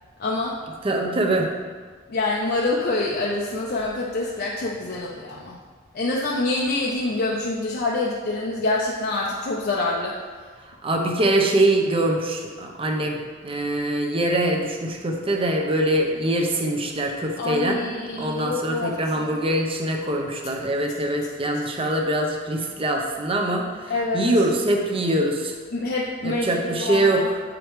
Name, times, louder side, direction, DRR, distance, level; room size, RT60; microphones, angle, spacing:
voice 1, 0.2-0.6 2.1-5.6 5.9-10.1 17.4-19.3 23.9-24.3 25.7-27.3, left 2 dB, 50° left, -3 dB, 0.6 m, -26 dB
voice 2, 0.8-1.5 10.8-17.8 18.1-23.7 24.1-25.5 26.2-27.4, right 1 dB, 30° right, 1 dB, 0.7 m, -23 dB
7.6 x 5.0 x 3.1 m, 1.5 s
head